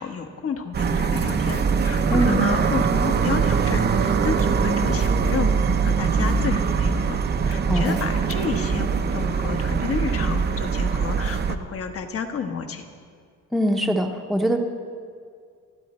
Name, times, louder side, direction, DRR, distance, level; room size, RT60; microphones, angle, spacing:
voice 1, 0.0-5.6 5.8-7.2 7.5-12.9, left 6 dB, 45° left, 6 dB, 1.3 m, -31 dB
sound 1, 0.7-11.5, right 5 dB, 30° right, 0.7 m, -22 dB
voice 2, 7.7-8.0 13.5-14.6, equal, ahead, 2 dB, 1.0 m, -22 dB
29.5 x 10.0 x 4.4 m, 2.1 s
cardioid pair, 160°, 32 cm